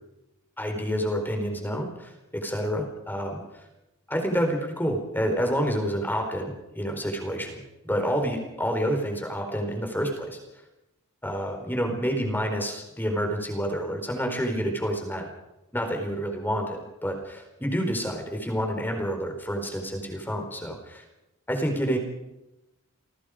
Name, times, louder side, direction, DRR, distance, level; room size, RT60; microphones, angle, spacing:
voice 1, 0.6-3.6 4.1-10.4 11.2-15.3 15.7-21.0 21.5-22.0, equal, 10° left, 3 dB, 4.4 m, -28 dB
29.5 x 19.0 x 5.1 m, 0.95 s
head